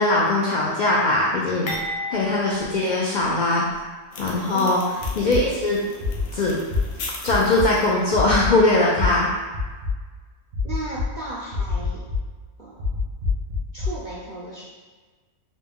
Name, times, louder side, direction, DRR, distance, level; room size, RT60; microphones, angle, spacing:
voice 1, 0.0-1.7 2.1-3.6 4.2-4.8 5.2-5.8 6.3-6.6 7.2-9.3, left 2 dB, 85° left, -3 dB, 0.4 m, -20 dB
sound 1, 1.7-3.8 4.2-4.3 5.2-5.4, left 1 dB, 40° left, 0.6 m, -34 dB
sound 2, 4.1-9.2, left 3 dB, 60° left, 0.9 m, -40 dB
sound 3, 5.0-5.4 6.0-6.2 6.7-6.8 7.3-7.6 8.1-8.5 9.0-9.1 9.5-9.9 10.5-11.0 11.5-12.2 12.8-13.9, left 5 dB, 85° right, 1.8 m, -25 dB
voice 2, 10.6-12.0 12.6-12.9 13.7-14.6, right 2 dB, 65° right, -6 dB, 0.4 m, -35 dB
3.9 x 2.2 x 3.5 m, 1.4 s
omnidirectional pair, 1.3 m